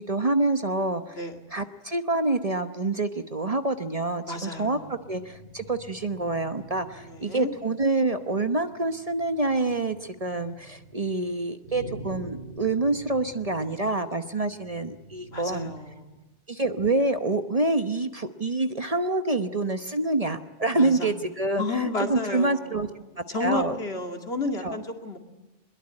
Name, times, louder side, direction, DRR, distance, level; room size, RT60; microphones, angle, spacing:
voice 1, 0.0-1.2 1.5-15.7 16.5-22.9 23.3-23.8 24.6-24.8, right 2 dB, 35° right, 8 dB, 1.0 m, -27 dB
sound 1, 3.6-16.2, right 2 dB, 55° right, 6.8 m, -47 dB
voice 2, 4.3-4.8 7.0-7.5 15.3-16.1 20.7-21.1 21.6-22.9 23.3-25.2, left 2 dB, 60° left, 5 dB, 2.6 m, -31 dB
22.5 x 21.5 x 9.8 m, 0.98 s
omnidirectional pair, 1.2 m